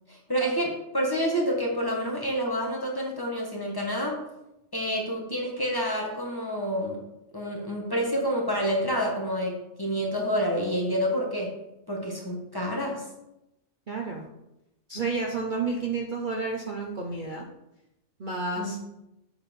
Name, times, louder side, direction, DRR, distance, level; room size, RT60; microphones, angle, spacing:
voice 1, 0.1-4.2 4.7-7.0 7.3-11.6 11.9-13.0 18.6-18.7, equal, 15° left, -2 dB, 1.3 m, -28 dB
voice 2, 13.9-14.3 14.9-17.5 18.2-18.8, right 4 dB, 45° right, 0 dB, 0.8 m, -30 dB
7.1 x 4.2 x 5.2 m, 0.90 s
omnidirectional pair, 1.4 m